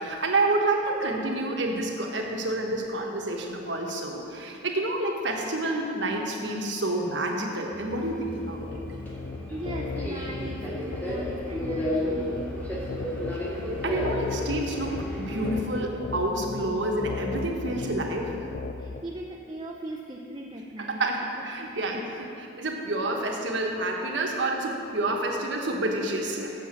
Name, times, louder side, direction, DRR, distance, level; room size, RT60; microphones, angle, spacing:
voice 1, 0.0-8.6 13.8-18.4 20.8-26.5, right 2 dB, 70° right, 1 dB, 1.3 m, -29 dB
Subway metro underground, 7.7-15.6, equal, 10° left, 1.7 m, -34 dB
sound 1, 8.2-19.0, left 4 dB, 50° left, 0.3 m, -36 dB
voice 2, 9.5-12.6 18.8-21.0 21.6-22.0, right 2 dB, 25° right, -1 dB, 0.6 m, -39 dB
7.7 x 7.1 x 7.4 m, 2.9 s
head